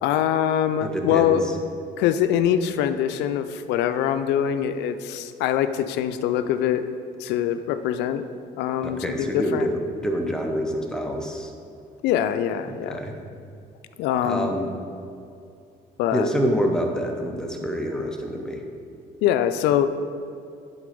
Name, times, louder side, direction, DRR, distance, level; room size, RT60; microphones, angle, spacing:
voice 1, 0.0-1.4 2.0-6.8 7.2-8.2 8.6-9.7 12.0-13.0 14.0-14.5 16.0-16.3 19.2-19.9, left 10 dB, 85° left, 10 dB, 0.5 m, -23 dB
voice 2, 0.8-1.4 8.8-11.5 12.7-13.1 14.2-14.7 16.1-18.6, equal, 5° left, 2 dB, 0.9 m, -27 dB
11.0 x 3.9 x 5.3 m, 2.5 s
cardioid pair, 110°, 17 cm